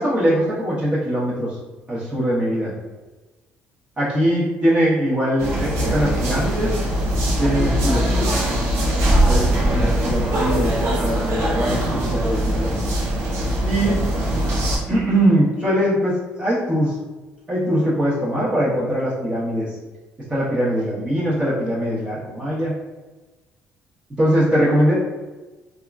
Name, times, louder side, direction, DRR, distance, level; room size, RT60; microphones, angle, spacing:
voice 1, 0.0-1.6 1.9-2.7 4.0-6.8 7.4-8.3 9.3-12.7 13.6-14.0 14.9-17.0 17.5-19.8 20.3-22.7 24.2-24.9, right 1 dB, 25° right, -9 dB, 0.9 m, -21 dB
sound 1, 5.4-14.8, right 1 dB, 75° right, 0.8 m, -21 dB
2.7 x 2.4 x 2.3 m, 1.2 s
supercardioid pair, 80°, 5 cm